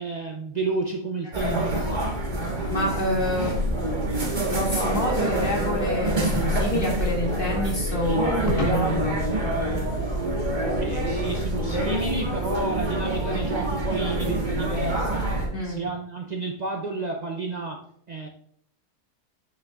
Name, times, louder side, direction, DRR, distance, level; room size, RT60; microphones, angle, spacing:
voice 1, 0.0-1.9 10.8-15.2 15.6-18.3, right 3 dB, 85° right, 1 dB, 0.3 m, -31 dB
sound 1, 1.3-15.5, right 1 dB, 35° right, 1.3 m, -26 dB
voice 2, 2.7-3.6 4.5-9.1 15.5-15.8, equal, 35° left, -3 dB, 2.1 m, -27 dB
8.2 x 6.5 x 2.3 m, 0.65 s
omnidirectional pair, 1.6 m